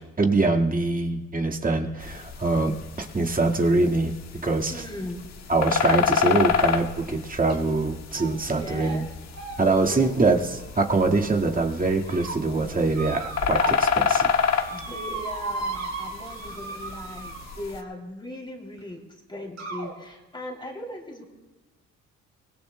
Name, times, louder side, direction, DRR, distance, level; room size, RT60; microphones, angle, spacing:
voice 1, 0.2-4.1 4.4-4.8 5.5-9.0 9.6-14.3, right 3 dB, 30° right, 1 dB, 1.8 m, -24 dB
sound 1, 2.0-17.8, left 7 dB, 65° left, 1.5 m, -29 dB
voice 2, 4.7-5.2 8.5-9.1 9.6-10.2 14.7-19.0 19.3-21.3, left 1 dB, 15° left, 1 dB, 3.0 m, -38 dB
sound 2, 7.5-7.8 8.1-8.5 8.8-9.0 9.3-11.3 11.8-12.4 12.9-13.9 14.2-17.8 18.8-18.9 19.6-19.9, right 4 dB, 60° right, 3.8 m, -36 dB
24.5 x 20.5 x 2.2 m, 1.1 s
cardioid pair, 90°, 30 cm